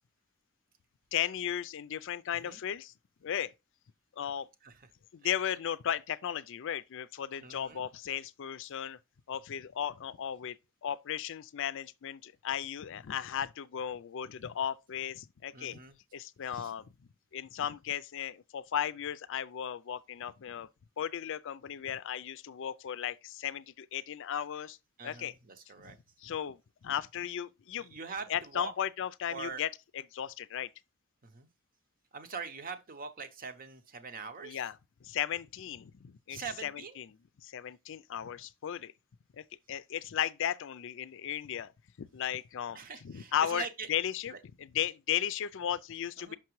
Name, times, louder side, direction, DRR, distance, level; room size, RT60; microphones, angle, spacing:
voice 1, 1.1-2.9 3.2-3.5 4.2-4.5 5.1-9.0 9.3-10.6 10.8-15.8 16.1-16.9 17.3-20.7 21.0-24.8 25.0-25.3 25.8-26.0 26.2-27.9 28.3-29.7 29.9-30.7 34.4-34.8 35.0-37.1 37.4-38.9 39.4-41.7 42.0-42.8 43.0-44.3 44.6-46.4, left 9 dB, 65° left, 0.4 m, -35 dB
voice 2, 7.4-7.8 15.5-16.0 16.5-16.7 25.0-26.0 27.8-28.7 29.3-29.6 31.2-31.5 32.1-34.6 36.3-37.0 42.7-43.9 44.3-44.4 46.2-46.4, right 5 dB, 40° right, 0.8 m, -43 dB
5.9 x 5.7 x 3.0 m
head